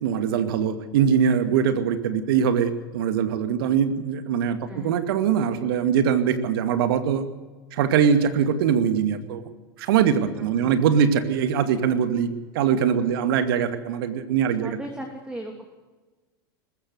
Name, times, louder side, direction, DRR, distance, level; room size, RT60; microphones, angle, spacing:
voice 1, 0.0-7.2 7.7-9.4 9.8-12.3 12.5-14.8, right 7 dB, 75° right, 9 dB, 2.3 m, -22 dB
voice 2, 4.7-5.0 10.4-10.8 13.1-13.3 14.6-15.7, right 1 dB, 10° right, 3 dB, 3.1 m, -37 dB
20.5 x 16.0 x 8.0 m, 1.2 s
hypercardioid pair, 100°, 12 cm